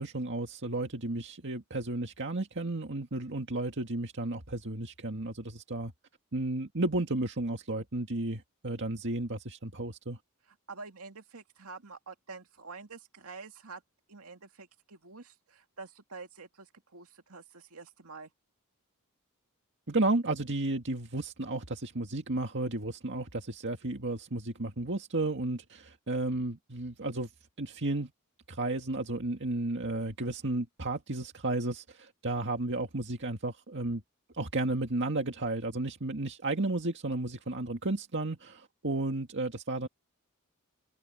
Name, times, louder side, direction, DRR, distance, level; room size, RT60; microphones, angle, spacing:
voice 1, 0.0-5.9 6.3-10.2 19.9-27.3 27.6-28.1 28.5-34.0 34.3-39.9, right 2 dB, 55° right, 2.0 m, -33 dB
voice 2, 10.7-13.8 14.1-18.3, right 4 dB, 85° right, 2.3 m, -47 dB
open air
head